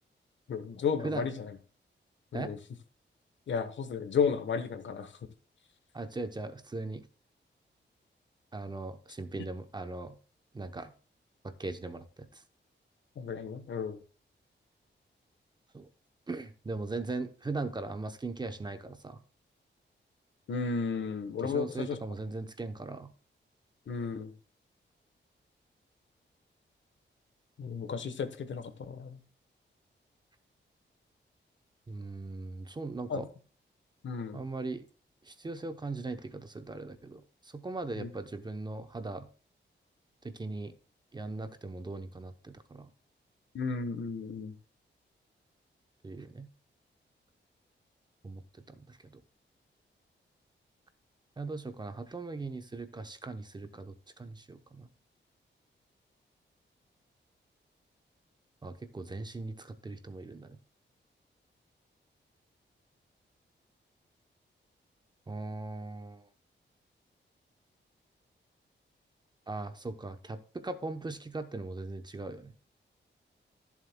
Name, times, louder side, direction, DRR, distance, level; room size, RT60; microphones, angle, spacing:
voice 1, 0.5-1.5 2.3-2.6 3.5-5.1 13.2-14.0 20.5-22.0 23.9-24.3 27.6-29.2 33.1-33.2 34.0-34.4 38.0-38.1 43.5-44.5, left 5 dB, 70° left, 1.1 m, -33 dB
voice 2, 5.9-7.0 8.5-10.2 10.5-10.9 11.4-12.4 15.7-15.9 16.3-19.2 21.4-23.1 31.9-33.3 34.3-34.8 35.2-39.3 40.2-40.7 41.1-42.9 46.0-46.5 48.2-48.4 48.7-49.2 51.4-54.9 58.6-60.6 65.3-66.2 69.5-72.5, right 3 dB, 20° right, 0.7 m, -39 dB
14.5 x 7.3 x 2.2 m
wide cardioid pair, 170°, 20 cm